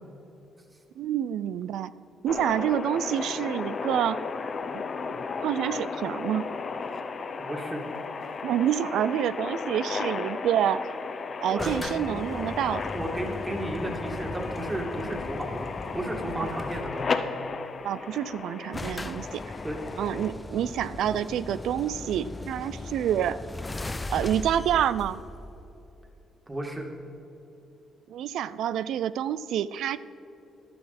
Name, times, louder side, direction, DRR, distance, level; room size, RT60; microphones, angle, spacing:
voice 1, 1.0-1.9 2.2-4.2 4.7-4.8 5.4-6.4 8.4-10.8 11.4-12.8 16.4-16.5 17.8-19.4 20.0-23.4 24.1-25.2 28.1-30.0, right 10 dB, 80° right, 15 dB, 0.3 m, -27 dB
sound 1, 2.3-20.3, left 4 dB, 45° left, 0.8 m, -34 dB
voice 2, 7.4-7.8 11.5-11.7 12.1-12.2 12.9-15.7 15.9-17.1 19.6-19.8 26.5-26.9, right 1 dB, 20° right, 1 dB, 2.2 m, -33 dB
sound 2, 11.6-17.1 18.1-18.2 18.4-18.5 18.7-26.2, left 2 dB, 20° left, 0.4 m, -38 dB
15.0 x 10.5 x 4.2 m, 3.0 s
cardioid pair, 90°, 0 cm